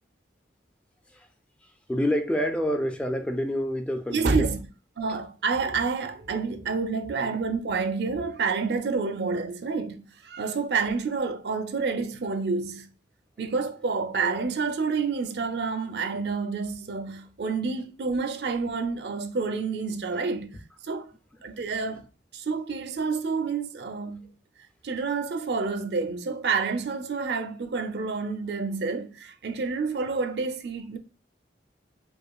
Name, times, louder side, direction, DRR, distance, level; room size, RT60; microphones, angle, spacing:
voice 1, 1.9-4.5, equal, 5° left, 0.3 m, -27 dB
voice 2, 4.1-4.7 5.0-12.9 13.4-20.6 20.8-21.1 21.4-22.0 22.3-24.3 24.8-31.0, right 4 dB, 65° right, 0.5 m, -28 dB
4.9 x 2.4 x 2.3 m
head